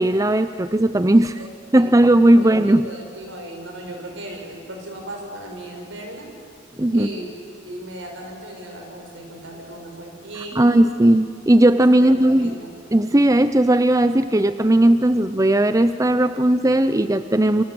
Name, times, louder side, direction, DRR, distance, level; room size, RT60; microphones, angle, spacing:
voice 1, 0.0-1.4 1.7-2.9 6.8-7.1 10.5-12.6 12.9-17.6, right 1 dB, 15° right, 11 dB, 0.6 m, -17 dB
voice 2, 2.3-6.3 6.9-7.3 7.7-10.7 12.0-12.7, right 1 dB, 75° right, 2 dB, 6.7 m, -36 dB
28.5 x 25.5 x 7.9 m, 2.6 s
head